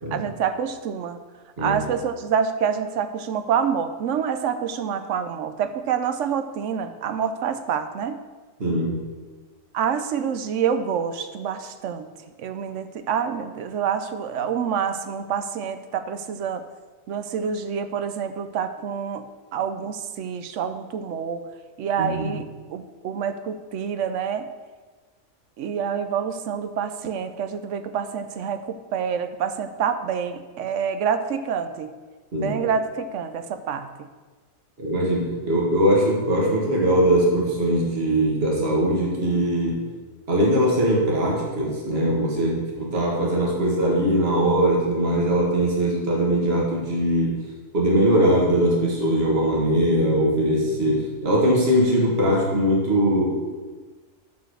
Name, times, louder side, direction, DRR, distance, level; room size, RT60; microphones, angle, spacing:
voice 1, 0.1-1.2 1.6-8.2 9.7-12.1 12.4-16.6 17.1-19.3 19.5-21.4 21.8-24.5 25.6-32.0 32.4-34.1, right 7 dB, 70° right, 10 dB, 0.9 m, -27 dB
voice 2, 8.6-9.0 22.0-22.3 32.3-32.6 34.8-39.8 40.3-47.4 47.7-53.2, right 1 dB, 50° right, -3 dB, 1.8 m, -21 dB
6.0 x 5.7 x 6.4 m, 1.3 s
omnidirectional pair, 1.4 m